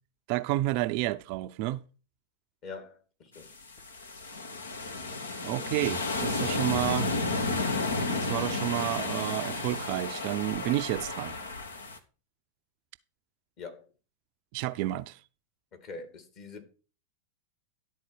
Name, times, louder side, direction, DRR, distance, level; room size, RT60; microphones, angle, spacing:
voice 1, 0.3-1.8 5.4-7.1 8.1-11.3 14.5-15.2, right 16 dB, 45° right, 0.4 m, -30 dB
voice 2, 2.6-3.5 13.6-13.9 15.7-16.7, left 4 dB, 40° left, 2.3 m, -44 dB
sound 1, 3.4-12.0, left 3 dB, 70° left, 1.1 m, -32 dB
11.5 x 4.3 x 6.3 m
figure-of-eight pair, 90°, 0 cm